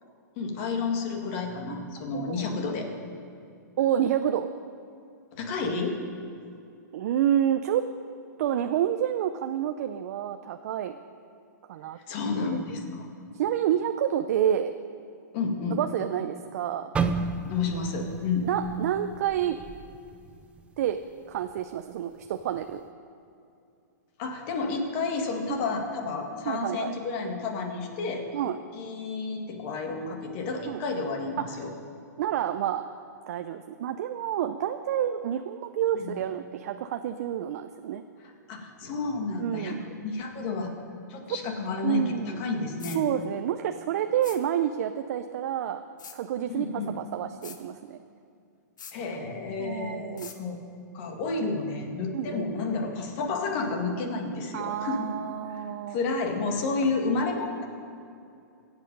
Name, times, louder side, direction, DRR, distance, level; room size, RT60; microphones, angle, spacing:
voice 1, 0.4-2.9 5.3-6.0 12.0-13.1 15.3-15.8 17.5-18.5 24.2-28.3 28.7-31.7 35.9-36.2 38.5-40.7 41.1-43.1 46.5-47.0 48.9-50.6 50.9-55.1 55.9-57.7, left 4 dB, 40° left, 4 dB, 1.9 m, -31 dB
voice 2, 1.7-2.5 3.8-4.5 6.9-7.8 8.4-11.0 11.7-12.0 12.4-12.6 13.3-14.7 15.8-16.9 18.4-19.6 20.8-21.0 21.3-22.8 25.5-25.6 26.5-27.0 28.3-28.6 30.7-30.8 31.4-31.7 32.2-32.8 33.3-38.0 39.4-39.8 41.3-41.4 41.8-42.4 42.9-45.8 46.1-48.0 49.6-50.3 52.1-52.5 54.5-56.0, right 10 dB, 55° right, 8 dB, 0.6 m, -29 dB
sound 1, 16.9-21.0 21.3-21.6 22.2-22.6, right 4 dB, 10° right, 0.5 m, -33 dB
sound 2, 42.8-43.0 44.2-44.4 46.0-46.2 47.4-47.6 48.8-49.0 50.2-50.4, left 7 dB, 80° left, 1.3 m, -42 dB
22.5 x 8.2 x 5.4 m, 2.6 s
hypercardioid pair, 150°, 10 cm